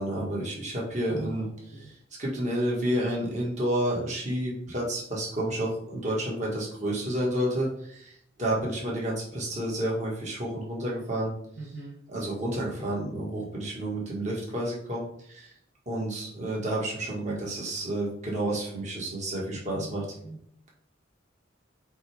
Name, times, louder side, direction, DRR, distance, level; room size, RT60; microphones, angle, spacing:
voice 1, 0.0-1.5 1.8-8.1 8.4-11.3 12.1-15.5 15.9-20.0, right 1 dB, 35° right, -4 dB, 1.9 m, -30 dB
voice 2, 1.1-1.9 11.6-11.9 19.7-20.4, right 3 dB, 60° right, -3 dB, 1.3 m, -41 dB
8.0 x 3.6 x 3.5 m, 0.68 s
head